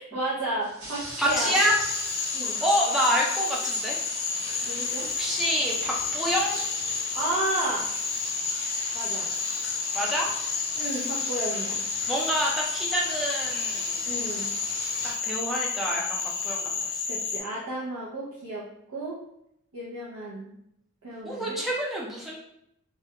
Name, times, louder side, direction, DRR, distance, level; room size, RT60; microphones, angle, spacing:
voice 1, 0.0-1.6 2.3-2.6 4.6-5.1 7.1-7.9 8.9-9.3 10.7-11.9 14.0-14.5 17.0-18.7 18.9-19.2 19.7-20.5 21.0-21.6, right 2 dB, 80° right, -7 dB, 0.6 m, -32 dB
sound 1, 0.6-15.1, right 1 dB, 55° right, 0.9 m, -39 dB
voice 2, 1.2-1.7 2.6-4.0 5.2-6.6 9.9-10.3 12.1-14.0 15.0-17.0 21.2-22.4, equal, ahead, -4 dB, 0.4 m, -27 dB
Cricket / Frog, 1.3-17.4, left 5 dB, 60° left, 0.5 m, -31 dB
2.3 x 2.1 x 2.8 m, 0.78 s
head